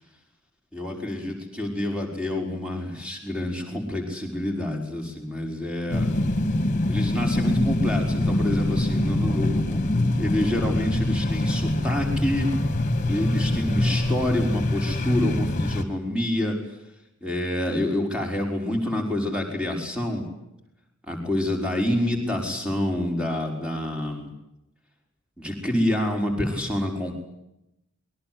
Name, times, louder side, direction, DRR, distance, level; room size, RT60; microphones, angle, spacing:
voice 1, 0.7-6.1 6.9-12.5 13.1-16.6 17.2-20.2 21.1-24.3 25.4-27.2, left 1 dB, 5° right, 2 dB, 5.7 m, -27 dB
sound 1, 5.9-15.8, left 1 dB, 35° left, 2.4 m, -24 dB
27.0 x 22.5 x 8.0 m, 0.87 s
head